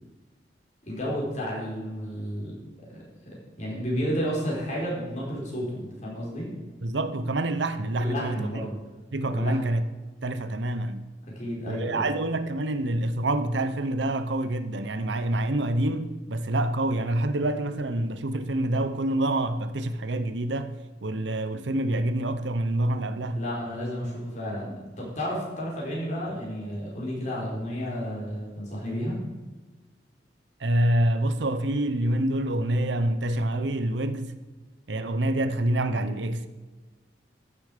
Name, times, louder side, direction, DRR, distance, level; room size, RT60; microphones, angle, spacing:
voice 1, 0.8-2.6 2.9-6.5 8.0-8.7 9.3-9.6 11.3-12.1 23.3-29.2, equal, 40° left, 4.3 m, -32 dB
voice 2, 6.8-8.5 9.1-9.8 10.2-11.0 11.7-20.8 21.0-23.4 30.6-34.3 34.9-36.5, right 1 dB, 80° right, 0.8 m, -27 dB
14.0 x 6.9 x 5.0 m
head